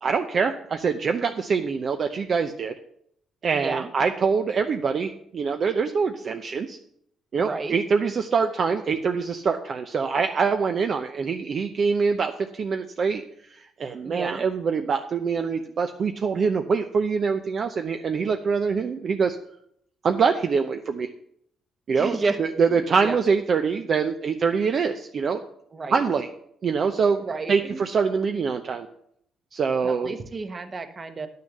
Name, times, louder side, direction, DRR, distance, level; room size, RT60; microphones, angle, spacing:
voice 1, 0.0-2.7 3.4-6.8 7.3-13.2 13.5-19.4 20.0-21.1 21.9-25.4 25.9-26.3 26.6-27.2 27.5-28.9 29.5-30.2, right 5 dB, 50° right, 6 dB, 0.7 m, -24 dB
voice 2, 3.5-3.9 7.4-7.8 14.0-14.4 21.9-22.4 22.7-23.2 25.7-26.0 27.2-27.8 29.8-31.3, right 3 dB, 35° right, 8 dB, 1.2 m, -31 dB
10.5 x 6.7 x 6.6 m, 0.69 s
cardioid pair, 90°, 0 cm